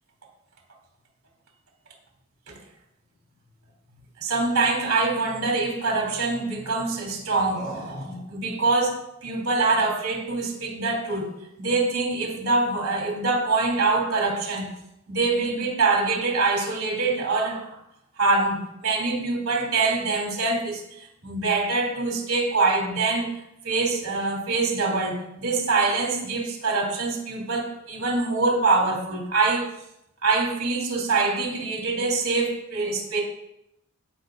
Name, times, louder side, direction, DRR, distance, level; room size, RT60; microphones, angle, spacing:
voice 1, 4.2-14.7 15.1-17.8 18.2-29.7 30.2-33.2, right 3 dB, 85° right, -1 dB, 3.1 m, -24 dB
17.0 x 5.8 x 2.6 m, 0.81 s
head